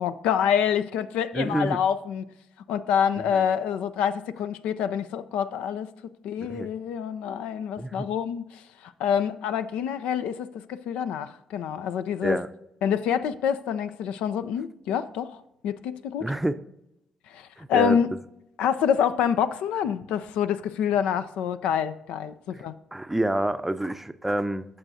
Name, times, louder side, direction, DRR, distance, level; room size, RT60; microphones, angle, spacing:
voice 1, 0.0-2.2 2.7-5.9 6.2-12.4 12.8-16.3 17.3-18.1 18.6-22.7, left 8 dB, 70° left, 12 dB, 0.4 m, -27 dB
voice 2, 1.3-1.8 3.3-3.4 6.4-6.7 7.8-8.1 12.2-12.5 16.2-16.6 17.6-18.0 22.5-22.7 22.9-24.6, right 1 dB, 10° right, 11 dB, 0.6 m, -28 dB
14.0 x 6.4 x 2.7 m, 0.82 s
hypercardioid pair, 45°, 2 cm